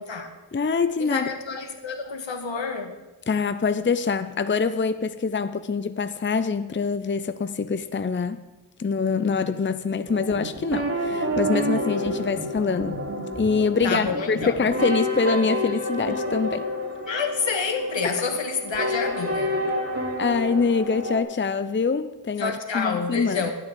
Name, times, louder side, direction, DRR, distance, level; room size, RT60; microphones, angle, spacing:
voice 1, 0.0-0.3 1.0-3.0 13.8-14.6 17.0-19.6 22.4-23.5, left 5 dB, 75° left, 5 dB, 1.9 m, -28 dB
voice 2, 0.5-1.3 3.3-8.4 8.8-13.0 13.3-16.7 18.0-18.1 20.2-23.5, left 5 dB, 25° left, 11 dB, 0.7 m, -25 dB
sound 1, 10.1-21.2, equal, 30° right, 3.0 m, -29 dB
12.0 x 8.8 x 7.6 m, 1.1 s
cardioid pair, 40°, 45 cm